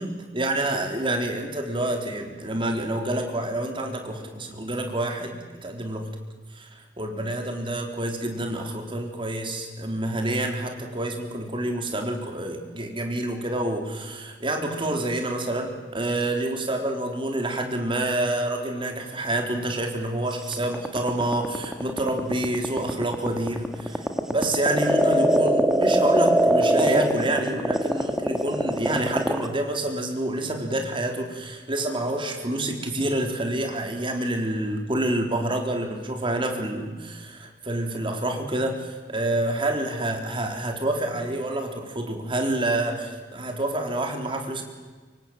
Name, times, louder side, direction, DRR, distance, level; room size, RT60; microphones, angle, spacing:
voice 1, 0.0-5.4 5.6-6.1 6.5-44.6, right 1 dB, 30° right, 3 dB, 4.1 m, -28 dB
sound 1, 20.5-29.5, equal, 5° right, 1.9 m, -22 dB
25.5 x 24.0 x 9.0 m, 1.4 s
head